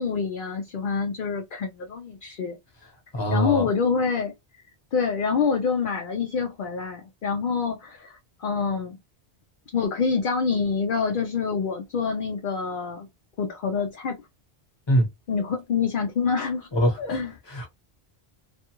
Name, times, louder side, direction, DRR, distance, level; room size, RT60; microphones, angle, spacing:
voice 1, 0.0-2.5 3.3-4.3 4.9-8.1 8.4-9.0 9.7-13.1 13.4-14.2 15.3-16.7 17.0-17.3, left 5 dB, 60° left, 0.7 m, -26 dB
voice 2, 3.1-3.7 14.9-15.1 16.7-17.2 17.5-17.7, equal, 25° left, 1.0 m, -23 dB
2.5 x 2.3 x 2.9 m
omnidirectional pair, 1.1 m